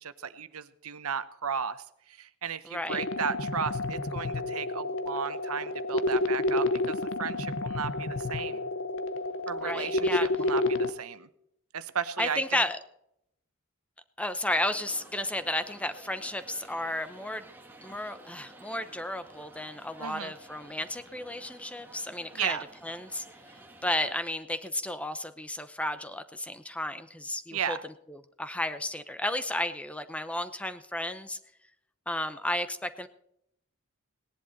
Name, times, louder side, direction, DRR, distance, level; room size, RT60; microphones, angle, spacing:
voice 1, 0.0-8.6 9.5-11.3 11.7-12.6 20.0-20.3 22.3-22.6 27.5-27.8, right 7 dB, 80° right, 13 dB, 0.9 m, -35 dB
voice 2, 2.7-3.0 9.6-10.3 12.2-12.8 14.2-17.5 17.8-22.6 22.8-23.2 23.8-27.8 28.1-31.4 32.1-33.1, left 1 dB, 5° left, 11 dB, 0.8 m, -33 dB
sound 1, 2.9-10.9, left 2 dB, 60° left, 0.8 m, -30 dB
sound 2, 14.4-24.2, right 2 dB, 10° right, 1.8 m, -52 dB
18.5 x 10.5 x 4.1 m, 0.76 s
head